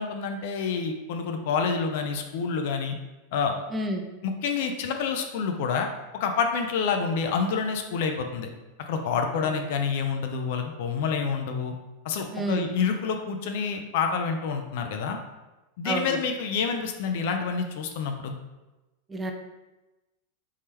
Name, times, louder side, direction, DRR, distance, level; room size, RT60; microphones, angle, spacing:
voice 1, 0.0-2.9 3.3-3.6 4.2-5.9 6.1-8.5 8.9-11.7 12.0-15.2 15.8-18.3, left 5 dB, 65° left, 5 dB, 0.5 m, -28 dB
voice 2, 3.7-4.0 9.3-9.6 12.3-12.7 15.8-16.2 19.1-19.3, right 1 dB, 15° right, 3 dB, 0.4 m, -30 dB
3.6 x 2.8 x 3.3 m, 1.1 s
hypercardioid pair, 120°, 0 cm